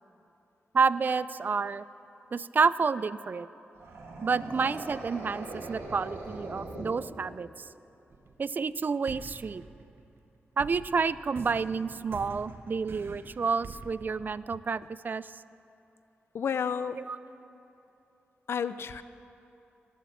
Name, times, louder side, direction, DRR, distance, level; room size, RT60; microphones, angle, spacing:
voice 1, 0.7-1.8 2.3-3.5 4.2-7.5 8.4-9.6 10.6-15.3 17.0-17.2, right 5 dB, 45° right, 17 dB, 0.3 m, -29 dB
sound 1, 3.7-7.6, right 2 dB, 90° right, 2.2 m, -41 dB
sound 2, 8.1-8.7 9.1-14.9, right 4 dB, 65° right, 0.9 m, -46 dB
voice 2, 16.3-17.0 18.5-19.0, left 7 dB, 75° left, 13 dB, 0.5 m, -31 dB
18.5 x 7.2 x 7.1 m, 2.9 s
cardioid pair, 65°, 4 cm